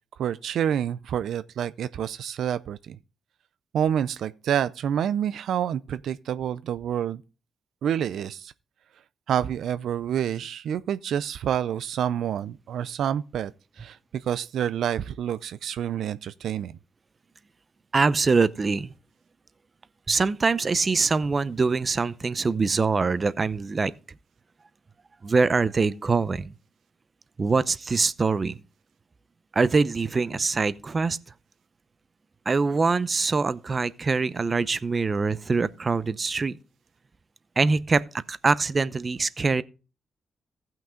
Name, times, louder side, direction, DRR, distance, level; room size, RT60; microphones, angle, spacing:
voice 1, 0.2-3.0 3.7-7.2 7.8-8.5 9.3-13.5 13.8-16.8, right 9 dB, 80° right, 0.4 m, -28 dB
voice 2, 17.9-18.9 20.1-23.9 25.2-26.5 27.4-28.6 29.5-31.2 32.5-36.6 37.6-38.0 38.3-39.6, right 4 dB, 40° right, 0.6 m, -24 dB
15.0 x 6.0 x 3.7 m
cardioid pair, 70°, 0 cm